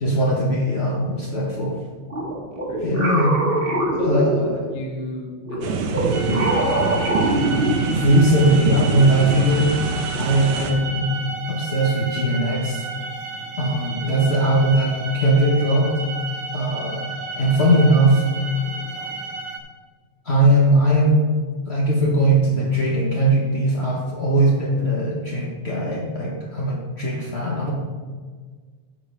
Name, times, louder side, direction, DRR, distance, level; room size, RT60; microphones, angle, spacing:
voice 1, 0.0-1.8 2.8-3.3 4.1-4.4 6.3-6.4 7.9-9.7 10.2-11.1 11.5-12.8 13.6-15.9 16.5-17.0 17.4-18.2 20.2-21.2 21.7-27.7, right 1 dB, 75° left, -3 dB, 0.5 m, -19 dB
sound 1, 2.1-4.9 5.4-8.2, right 1 dB, 25° right, 1.3 m, -24 dB
voice 2, 2.7-3.1 3.5-6.5 14.0-14.3 18.4-19.5, left 1 dB, 55° left, -1 dB, 2.0 m, -36 dB
sound 2, 5.6-10.7, right 5 dB, 70° right, 1.9 m, -25 dB
sound 3, 6.1-19.6, right 4 dB, 85° right, 2.4 m, -32 dB
9.4 x 5.4 x 6.8 m, 1.5 s
omnidirectional pair, 3.3 m